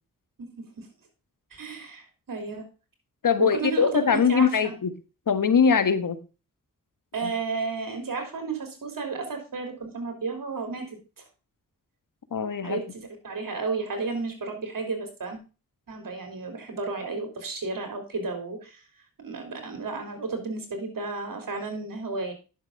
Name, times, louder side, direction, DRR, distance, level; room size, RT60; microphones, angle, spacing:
voice 1, 1.5-2.6 3.4-4.7 7.1-11.0 12.6-15.4 15.9-18.8 19.2-22.3, right 4 dB, 70° right, 5 dB, 4.1 m, -32 dB
voice 2, 3.2-4.9 5.3-6.2 7.2-7.3 12.3-12.8, left 6 dB, 65° left, 12 dB, 1.5 m, -22 dB
11.0 x 7.3 x 4.0 m, 0.32 s
cardioid pair, 55°, 35 cm